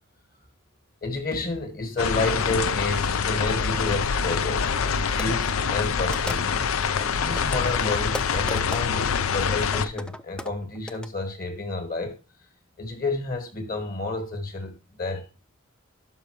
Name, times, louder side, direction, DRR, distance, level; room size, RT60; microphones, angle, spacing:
voice 1, 1.0-4.7 5.2-6.6 7.2-12.2 12.8-15.3, left 2 dB, 45° left, 1.5 m, -30 dB
sound 1, 2.0-9.9, left 6 dB, 85° left, 0.6 m, -25 dB
sound 2, 4.9-5.0 5.2-5.3 6.1-6.7 7.0-9.0 9.7-11.1, left 1 dB, 5° left, 0.3 m, -37 dB
12.0 x 5.4 x 3.0 m
head